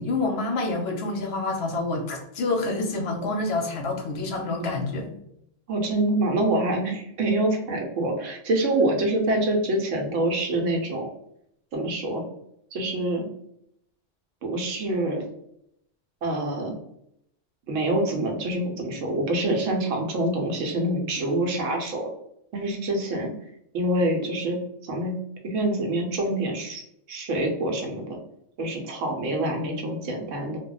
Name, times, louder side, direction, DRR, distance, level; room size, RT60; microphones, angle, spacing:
voice 1, 0.0-5.1, left 2 dB, 65° left, 2 dB, 0.8 m, -27 dB
voice 2, 5.7-11.1 11.7-12.2 12.7-13.3 14.4-15.2 16.2-16.7 17.7-22.1 22.5-23.3 23.7-25.1 25.4-26.8 27.1-28.2 28.6-30.6, right 1 dB, 85° right, 2 dB, 1.0 m, -26 dB
2.3 x 2.1 x 3.7 m, 0.75 s
omnidirectional pair, 1.3 m